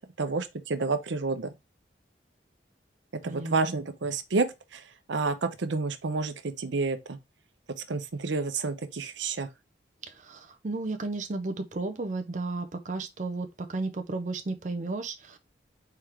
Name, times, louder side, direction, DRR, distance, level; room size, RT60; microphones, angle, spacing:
voice 1, 0.2-1.5 3.1-7.2 7.9-9.5, right 3 dB, 80° right, 0.7 m, -30 dB
voice 2, 3.2-3.7 10.0-15.4, right 3 dB, 40° right, 0.5 m, -34 dB
4.4 x 3.5 x 3.4 m
head